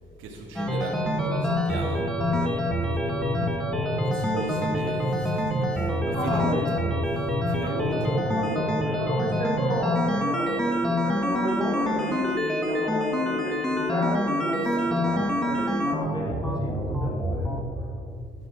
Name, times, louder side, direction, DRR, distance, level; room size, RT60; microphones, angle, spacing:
voice 1, 0.2-2.6 2.9-3.3 4.0-8.3 14.6-15.1, right 2 dB, 80° right, -1 dB, 1.5 m, -37 dB
sound 1, 0.6-17.6, equal, 5° left, 1.5 m, -26 dB
voice 2, 6.1-6.8 7.6-17.9, left 1 dB, 20° left, -2 dB, 2.6 m, -33 dB
11.5 x 6.3 x 6.1 m, 2.7 s
cardioid pair, 90°, 20 cm